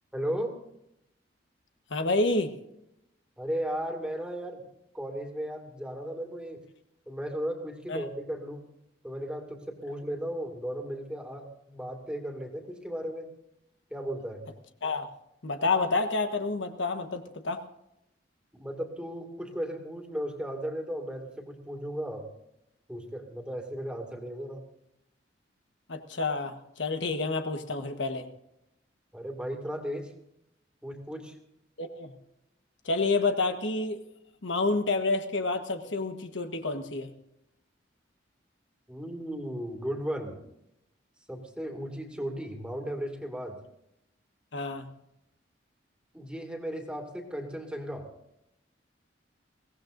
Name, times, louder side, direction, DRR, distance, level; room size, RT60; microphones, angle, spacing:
voice 1, 0.1-0.6 3.4-4.7 4.9-6.6 7.1-8.6 9.0-13.3 13.9-14.5 18.5-22.3 22.9-24.6 29.1-30.1 30.8-31.4 38.9-40.4 41.3-43.6 46.1-48.1, equal, 5° right, 2 dB, 2.2 m, -35 dB
voice 2, 1.9-2.5 7.9-8.0 14.8-15.1 15.4-17.6 25.9-28.3 31.8-32.1 32.8-34.0 34.4-37.1 44.5-44.9, left 3 dB, 85° left, 7 dB, 1.3 m, -29 dB
22.5 x 17.5 x 2.6 m, 0.81 s
head